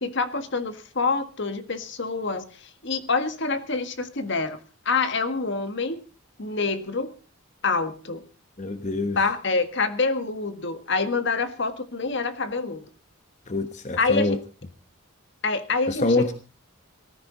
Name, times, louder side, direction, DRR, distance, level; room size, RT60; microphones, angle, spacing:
voice 1, 0.0-4.6 4.8-6.0 6.4-7.1 7.6-8.2 9.1-12.8 14.0-14.4 15.4-16.3, left 4 dB, 55° left, 10 dB, 1.6 m, -26 dB
voice 2, 8.6-9.2 13.5-14.4 15.9-16.3, left 2 dB, 35° left, 9 dB, 1.1 m, -25 dB
18.5 x 14.0 x 3.9 m, 0.34 s
head